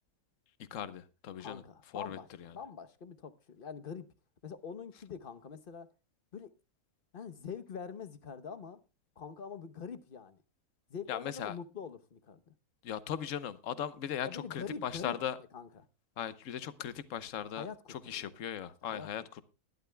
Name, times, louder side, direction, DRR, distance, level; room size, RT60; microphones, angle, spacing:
voice 1, 0.7-1.6 1.9-2.2 11.1-11.5 12.8-15.4 16.2-17.7 18.1-19.2, left 9 dB, 60° left, 1.2 m, -38 dB
voice 2, 1.4-4.1 4.4-5.9 6.3-6.5 7.1-8.8 9.2-10.4 10.9-12.5 14.2-15.2 15.5-15.9 17.5-18.2 18.8-19.4, left 6 dB, 40° left, 1.0 m, -44 dB
20.0 x 12.5 x 2.2 m
omnidirectional pair, 1.6 m